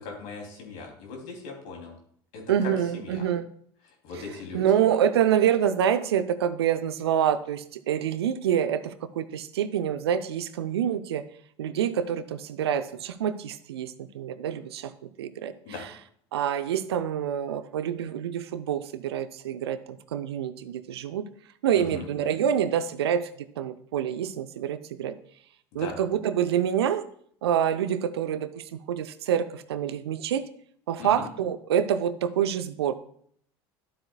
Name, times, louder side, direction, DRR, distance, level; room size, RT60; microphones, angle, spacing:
voice 1, 0.0-1.9 2.3-3.3 4.0-4.6 15.6-15.9 21.7-22.1 25.8-25.9 31.0-31.3, left 4 dB, 60° left, 1 dB, 2.8 m, -39 dB
voice 2, 2.5-3.5 4.5-11.3 11.6-14.9 15.2-15.9 16.3-21.3 21.6-23.3 23.6-25.2 25.7-27.0 27.4-30.4 30.9-32.9, right 9 dB, 75° right, 13 dB, 0.6 m, -27 dB
12.0 x 7.8 x 2.3 m, 0.63 s
figure-of-eight pair, 70°, 14 cm